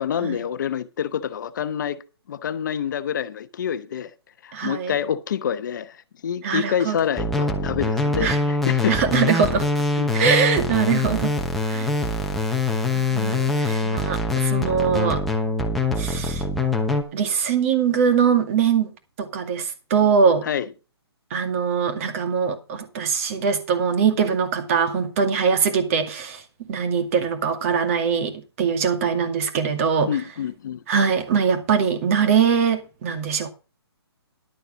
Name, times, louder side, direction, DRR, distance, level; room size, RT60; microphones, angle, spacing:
voice 1, 0.0-2.0 2.3-4.1 4.4-9.0 10.0-10.2 20.4-20.7 30.1-30.8, left 8 dB, 45° left, 0.9 m, -27 dB
voice 2, 4.5-4.9 6.4-7.0 8.2-8.4 8.9-9.7 10.1-11.3 11.6-11.9 12.9-15.2 16.0-16.4 17.1-18.9 19.2-20.5 21.3-26.4 26.7-30.1 30.9-33.5, right 6 dB, 30° right, 2.2 m, -22 dB
sound 1, 7.2-17.0, left 2 dB, ahead, 1.0 m, -23 dB
12.0 x 6.6 x 6.3 m
hypercardioid pair, 160°, 14 cm